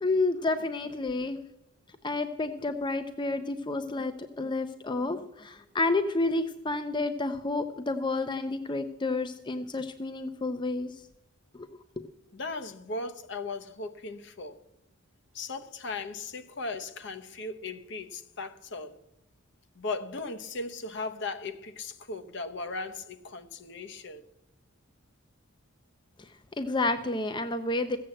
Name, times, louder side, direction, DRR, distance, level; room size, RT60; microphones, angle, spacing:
voice 1, 0.0-1.4 2.0-10.9 12.0-12.1 26.6-28.0, left 2 dB, 20° left, 0.5 m, -30 dB
voice 2, 12.3-14.6 15.3-19.0 19.8-24.2, left 3 dB, 55° left, 0.9 m, -37 dB
15.0 x 7.8 x 7.7 m
head